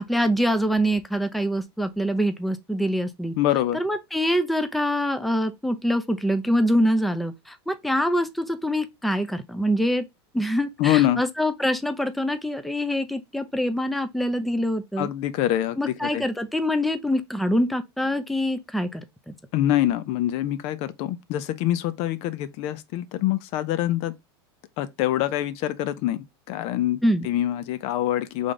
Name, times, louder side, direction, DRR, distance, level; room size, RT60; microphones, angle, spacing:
voice 1, 0.0-3.3 3.7-10.0 10.3-15.1 15.8-19.3 27.0-27.3, equal, ahead, 0.5 m, -25 dB
voice 2, 3.4-3.8 10.8-11.2 15.0-16.3 19.5-24.1 24.8-28.5, left 13 dB, 50° left, 0.5 m, -25 dB
3.7 x 3.4 x 3.7 m
hypercardioid pair, 115°, 13 cm